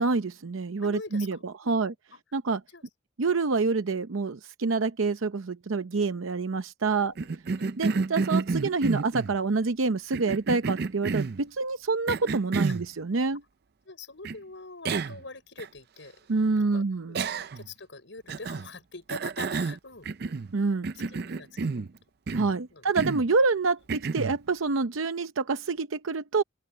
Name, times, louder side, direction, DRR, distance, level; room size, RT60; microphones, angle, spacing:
voice 1, 0.0-1.9 2.3-2.6 3.2-7.1 7.8-13.4 16.3-17.2 20.5-20.9 22.3-26.4, right 4 dB, 90° right, 0.7 m, -27 dB
voice 2, 0.8-1.9 2.7-2.8 3.2-3.3 6.9-7.8 13.8-16.3 16.5-20.1 20.9-21.8 22.7-22.9 26.3-26.4, left 3 dB, 65° left, 6.2 m, -45 dB
Cough, 7.2-9.4 10.1-11.4 12.1-12.9 14.2-14.4 14.8-15.2 15.6-15.7 17.1-17.7 18.3-18.7 19.1-20.5 20.8-21.9 22.3-22.6 23.0-23.3 23.9-24.4, right 4 dB, 50° right, 0.5 m, -30 dB
open air
head